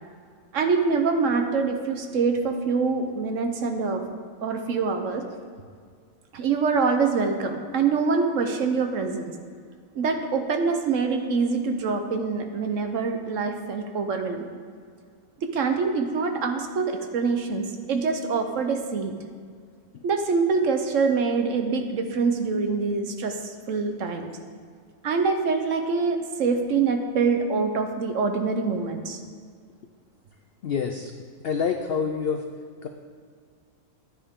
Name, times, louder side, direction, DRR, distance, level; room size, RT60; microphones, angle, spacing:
voice 1, 0.5-4.0 4.4-5.2 6.3-9.3 9.9-14.6 15.4-19.1 20.0-24.3 25.0-29.2, right 4 dB, 60° right, 5 dB, 1.1 m, -25 dB
voice 2, 30.6-31.1 31.4-32.4 32.8-32.9, left 6 dB, 70° left, 5 dB, 0.5 m, -27 dB
10.0 x 9.7 x 3.6 m, 2.1 s
omnidirectional pair, 1.6 m